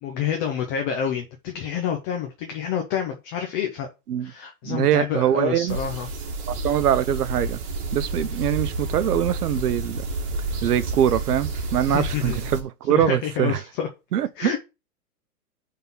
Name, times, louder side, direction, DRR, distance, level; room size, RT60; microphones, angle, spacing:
voice 1, 0.0-3.9 4.2-6.1 11.9-12.4 12.9-13.9 14.4-14.6, left 8 dB, 15° left, 0.4 m, -28 dB
voice 2, 4.6-5.8 6.5-7.6 7.9-10.0 10.6-13.6 14.1-14.6, right 10 dB, 85° right, 0.8 m, -23 dB
sound 1, 5.7-12.6, right 2 dB, 45° right, 2.2 m, -30 dB
5.4 x 3.7 x 5.8 m
hypercardioid pair, 135°, 45 cm